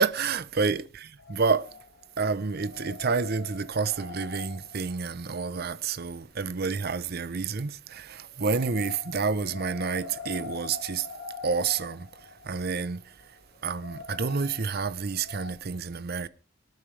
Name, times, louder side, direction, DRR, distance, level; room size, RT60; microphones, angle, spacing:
voice 1, 0.0-1.7 2.2-11.1 11.4-13.2 13.6-16.3, right 5 dB, 45° right, 0.6 m, -29 dB
sound 1, 1.2-2.2 2.5-5.6 8.3-15.5, left 4 dB, 85° left, 3.4 m, -43 dB
24.5 x 9.3 x 3.2 m
head